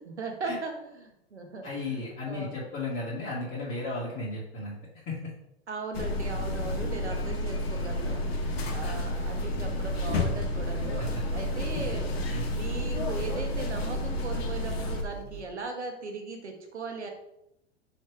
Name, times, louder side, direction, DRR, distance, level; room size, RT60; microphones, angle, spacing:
voice 1, 0.0-2.6 5.7-8.2 8.7-17.1, right 3 dB, 85° right, 4 dB, 1.4 m, -38 dB
voice 2, 1.6-4.8 5.1-5.2 12.3-12.5, left 2 dB, 40° left, -7 dB, 2.2 m, -34 dB
sound 1, 5.9-15.0, left 1 dB, 65° left, 1.3 m, -30 dB
sound 2, 9.8-15.4, right 5 dB, 30° right, 1.6 m, -43 dB
6.3 x 3.4 x 4.6 m, 0.81 s
figure-of-eight pair, 95°, 33 cm